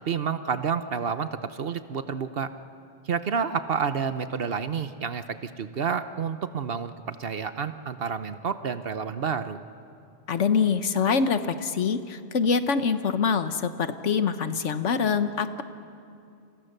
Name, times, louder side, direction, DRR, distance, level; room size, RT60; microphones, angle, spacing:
voice 1, 0.0-2.5 3.0-9.6, right 6 dB, 60° right, 11 dB, 1.0 m, -29 dB
voice 2, 10.3-15.6, left 6 dB, 90° left, 10 dB, 1.4 m, -25 dB
29.5 x 26.5 x 6.7 m, 2.6 s
omnidirectional pair, 1.2 m